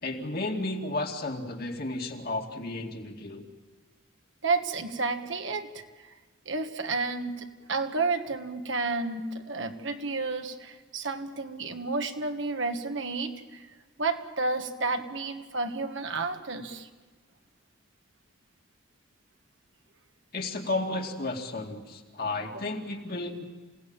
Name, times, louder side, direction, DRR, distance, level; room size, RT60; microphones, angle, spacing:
voice 1, 0.0-3.4 20.3-23.4, left 2 dB, 45° left, 2 dB, 2.2 m, -33 dB
voice 2, 4.4-5.8 6.4-13.6 14.0-16.9, right 3 dB, 65° right, 6 dB, 1.6 m, -31 dB
27.5 x 17.5 x 8.9 m, 1.3 s
head